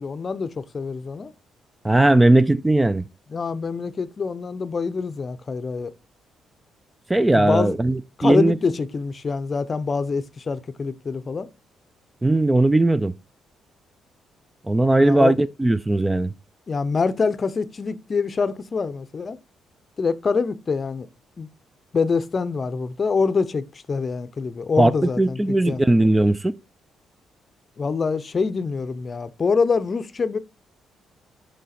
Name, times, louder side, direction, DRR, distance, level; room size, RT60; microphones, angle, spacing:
voice 1, 0.0-1.3 3.3-5.9 7.3-7.7 8.2-11.5 15.0-15.3 16.7-19.4 20.0-21.1 21.4-21.5 21.9-25.8 27.8-30.4, left 4 dB, 40° left, 0.6 m, -25 dB
voice 2, 1.8-3.1 7.1-8.6 12.2-13.1 14.7-16.3 24.8-26.6, right 2 dB, 15° right, 0.4 m, -18 dB
6.2 x 4.7 x 4.2 m
cardioid pair, 90°, 0 cm